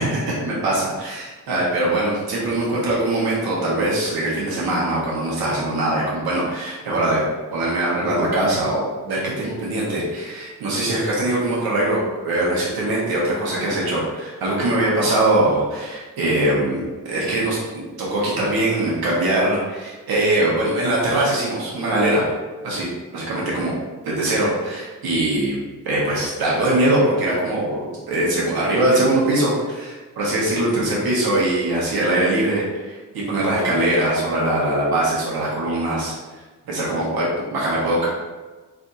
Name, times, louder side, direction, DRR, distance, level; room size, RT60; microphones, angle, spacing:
voice 1, 0.0-7.2 7.5-22.3 22.6-22.9 23.1-23.8 24.0-25.6 25.8-36.1 36.6-38.1, right 1 dB, 75° right, -5 dB, 1.4 m, -22 dB
3.5 x 3.4 x 2.7 m, 1.3 s
supercardioid pair, 45°, 37 cm